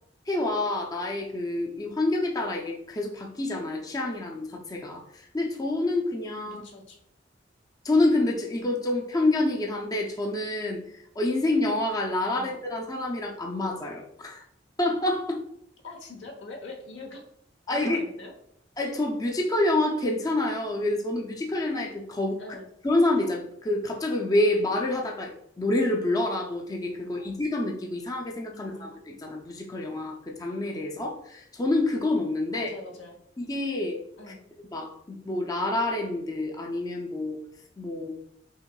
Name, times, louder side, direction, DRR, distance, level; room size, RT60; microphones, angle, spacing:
voice 1, 0.3-6.6 7.8-10.8 11.2-14.4 14.8-15.4 17.7-18.0 18.8-22.4 22.8-25.3 25.6-32.7 33.4-34.0 34.7-37.4 37.8-38.1, left 2 dB, 20° left, 0 dB, 0.5 m, -27 dB
voice 2, 6.4-7.0 12.3-12.5 15.8-17.3 17.7-18.3 22.4-22.7 27.0-27.3 28.5-28.9 32.5-33.2 34.2-34.5, left 2 dB, 85° left, 3 dB, 0.9 m, -43 dB
5.6 x 3.0 x 2.2 m, 0.72 s
head